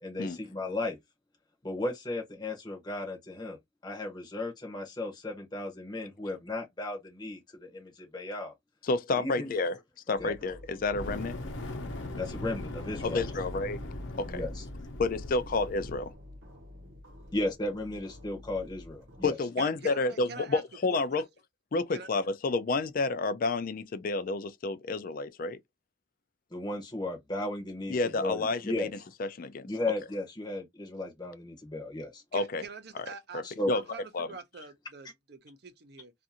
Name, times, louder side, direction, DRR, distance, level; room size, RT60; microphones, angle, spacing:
voice 1, 0.0-1.0 1.6-8.5 9.2-9.5 10.2-10.3 12.2-13.2 14.3-14.6 17.3-19.4 26.5-28.9 29.7-32.2 33.4-33.7, left 2 dB, 20° left, 0.8 m, -35 dB
voice 2, 8.8-9.7 10.1-11.4 13.0-13.8 14.2-14.4 15.0-16.1 19.2-21.2 21.7-25.6 27.9-28.9 29.2-29.7 32.3-32.6 33.3-33.8 34.1-34.3, left 3 dB, 45° left, 0.4 m, -30 dB
sound 1, 10.1-19.3, left 1 dB, 85° right, 0.9 m, -49 dB
Fire, 10.8-16.1, left 1 dB, 80° left, 0.8 m, -39 dB
voice 3, 19.6-20.6 20.9-21.2 21.9-22.1 32.3-36.1, right 4 dB, 55° right, 0.7 m, -45 dB
2.5 x 2.4 x 2.7 m
head